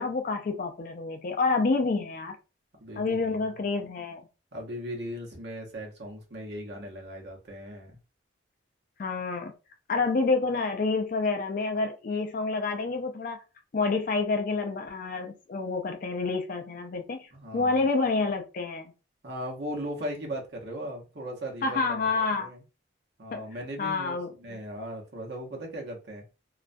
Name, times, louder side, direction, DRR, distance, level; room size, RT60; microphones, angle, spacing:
voice 1, 0.0-2.4 3.0-4.3 9.0-9.5 9.9-13.4 13.7-17.3 17.5-18.9 21.6-22.5 23.3-23.4 23.8-24.6, left 3 dB, 45° left, 4 dB, 0.3 m, -28 dB
voice 2, 2.8-3.4 4.5-8.0 17.3-17.8 19.2-22.1 22.4-22.6 23.2-26.2, equal, 55° right, 0 dB, 0.8 m, -38 dB
2.3 x 2.1 x 2.5 m, 0.31 s
head